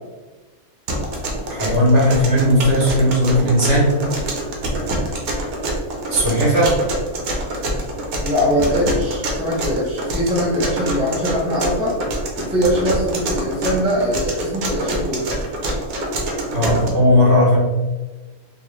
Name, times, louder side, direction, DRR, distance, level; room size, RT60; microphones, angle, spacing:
sound 1, 0.9-16.9, right 1 dB, 80° right, 1.2 m, -25 dB
voice 1, 1.5-4.0 6.1-6.7 16.5-17.6, equal, 55° right, -5 dB, 1.4 m, -16 dB
voice 2, 8.2-12.0 12.4-15.3, equal, 10° right, -5 dB, 0.4 m, -21 dB
3.7 x 2.3 x 3.1 m, 1.2 s
omnidirectional pair, 1.5 m